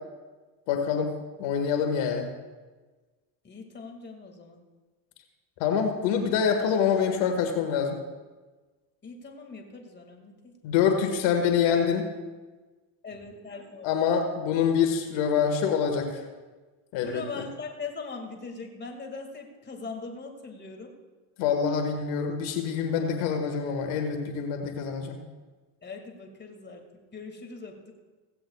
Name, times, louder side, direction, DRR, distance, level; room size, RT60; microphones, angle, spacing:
voice 1, 0.7-1.1 1.4-2.3 5.6-8.0 10.6-12.0 13.8-16.2 16.9-17.4 21.4-25.2, left 7 dB, 70° left, 4 dB, 1.8 m, -25 dB
voice 2, 3.4-4.6 9.0-10.5 13.0-13.9 17.0-20.9 25.8-26.9 27.1-27.9, left 4 dB, 20° left, 2 dB, 2.2 m, -41 dB
16.0 x 15.5 x 2.4 m, 1.3 s
supercardioid pair, 90°, 46 cm